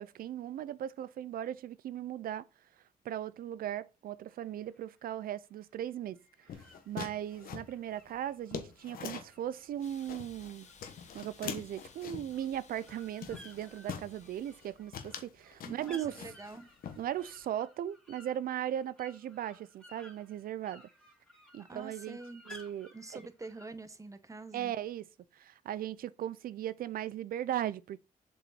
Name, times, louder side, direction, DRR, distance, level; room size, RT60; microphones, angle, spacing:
voice 1, 0.0-2.4 3.0-10.7 11.1-16.1 17.0-20.9 21.5-22.2 22.5-22.9 24.5-25.1 25.3-28.0, right 11 dB, 85° right, 0.5 m, -38 dB
sound 1, 4.4-5.1 6.1-11.4 11.7-23.7, left 1 dB, 5° left, 2.8 m, -58 dB
sound 2, 6.5-9.4 9.8-10.5 10.8-12.4 12.8-13.0 13.2-14.1 14.5-14.7 14.9-16.6 16.8-17.4, left 7 dB, 85° left, 1.2 m, -43 dB
Hiss, 9.8-14.8, left 5 dB, 55° left, 1.7 m, -58 dB
voice 2, 15.6-16.7 21.6-22.4 22.9-24.7, right 3 dB, 20° right, 1.3 m, -46 dB
7.5 x 5.4 x 4.2 m
cardioid pair, 85°, 15 cm